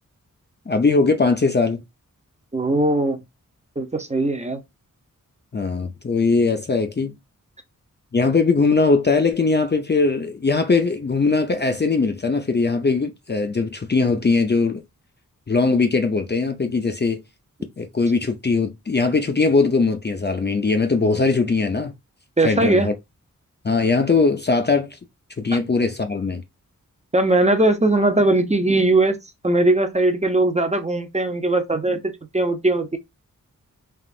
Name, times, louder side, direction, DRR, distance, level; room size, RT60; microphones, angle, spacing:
voice 1, 0.7-1.8 5.5-7.1 8.1-14.8 15.5-17.2 17.8-21.9 22.4-22.9 23.6-25.0 25.4-26.4, left 4 dB, 30° left, 0.5 m, -20 dB
voice 2, 2.5-3.2 3.8-4.6 22.4-22.9 27.1-29.2 29.4-33.0, right 2 dB, 20° right, 0.7 m, -19 dB
3.5 x 2.5 x 2.4 m
cardioid pair, 55°, 34 cm